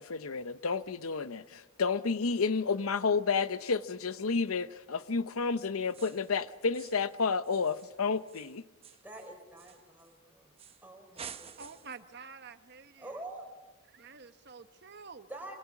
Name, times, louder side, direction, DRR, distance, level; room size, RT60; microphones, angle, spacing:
voice 1, 0.0-8.6, left 5 dB, 75° left, 0.8 m, -31 dB
sound 1, 5.9-6.3 6.7-7.1 7.4-10.1 10.6-10.9 11.2-12.0, right 7 dB, 25° right, 0.9 m, -50 dB
voice 2, 9.0-10.5 10.8-11.8 13.0-13.5 15.3-15.5, right 2 dB, 10° right, 4.5 m, -46 dB
voice 3, 11.6-13.2 13.9-15.3, right 5 dB, 50° right, 1.0 m, -49 dB
27.0 x 24.5 x 6.0 m
head